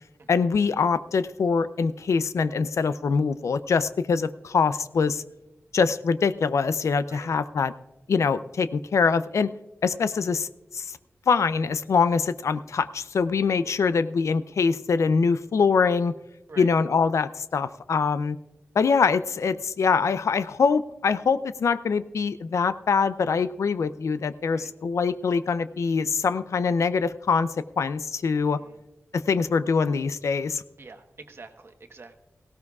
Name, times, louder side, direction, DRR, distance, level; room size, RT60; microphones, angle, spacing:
voice 1, 0.3-5.2 5.7-7.7 8.1-9.5 9.8-10.5 10.7-10.9 11.3-16.1 16.6-18.4 18.8-27.5 27.8-28.6 29.1-30.6, left 5 dB, 85° left, 14 dB, 0.5 m, -24 dB
voice 2, 28.3-28.8 30.8-32.2, right 3 dB, 55° right, 6 dB, 1.2 m, -47 dB
17.5 x 16.5 x 2.4 m, 0.97 s
wide cardioid pair, 85°, 5 cm